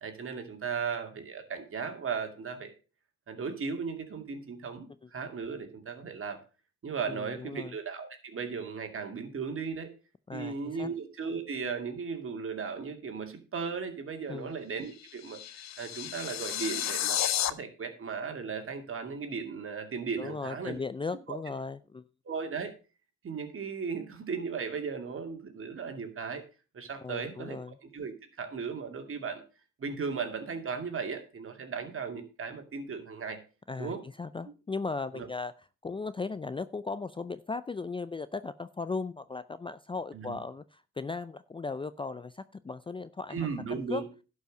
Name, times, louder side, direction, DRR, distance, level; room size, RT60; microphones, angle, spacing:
voice 1, 0.0-2.7 3.3-6.4 6.8-9.9 10.3-17.2 17.5-20.8 21.3-21.4 22.2-22.7 23.2-26.4 26.7-29.4 29.8-33.4 33.8-34.0 34.5-34.6 35.1-35.3 40.1-40.4 43.3-44.1, right 5 dB, 45° right, 6 dB, 2.5 m, -36 dB
voice 2, 7.1-7.7 10.3-10.9 14.3-14.5 20.2-22.0 27.0-27.8 33.7-35.5 35.8-44.0, left 4 dB, 15° left, 15 dB, 0.5 m, -37 dB
sound 1, 14.8-17.5, left 11 dB, 60° left, 0.8 m, -32 dB
11.5 x 5.5 x 6.4 m, 0.34 s
cardioid pair, 90°, 30 cm